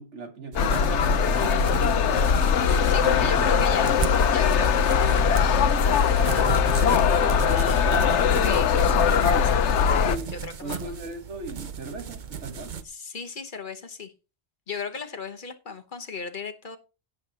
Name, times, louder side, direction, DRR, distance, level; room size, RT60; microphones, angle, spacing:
voice 1, 0.0-2.4 3.0-3.9 10.0-10.3 10.6-12.8, right 3 dB, 85° right, 1.8 m, -37 dB
sound 1, 0.5-12.8, right 6 dB, 45° right, 0.8 m, -36 dB
sound 2, 0.6-10.2, left 7 dB, 80° left, 1.0 m, -21 dB
voice 2, 2.9-3.9 4.3-6.7 7.1-10.0 10.3-11.0 12.8-14.1 14.7-16.8, left 4 dB, 45° left, 1.1 m, -37 dB
16.5 x 6.7 x 2.8 m
omnidirectional pair, 1.2 m